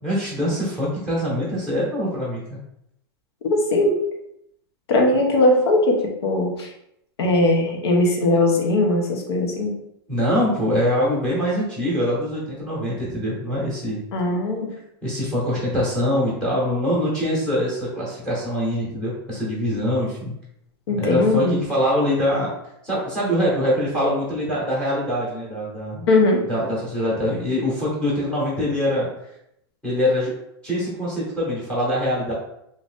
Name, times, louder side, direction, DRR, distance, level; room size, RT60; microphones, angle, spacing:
voice 1, 0.0-2.6 10.1-14.0 15.0-20.3 21.0-22.5 22.8-26.0 26.5-29.1 29.8-30.3 30.6-32.3, equal, 5° left, -6 dB, 0.8 m, -23 dB
voice 2, 3.4-3.9 4.9-6.7 7.2-9.7 14.1-14.7 20.9-21.6 26.1-26.4, left 2 dB, 90° left, 1 dB, 0.8 m, -19 dB
2.7 x 2.5 x 3.4 m, 0.77 s
supercardioid pair, 170°, 13 cm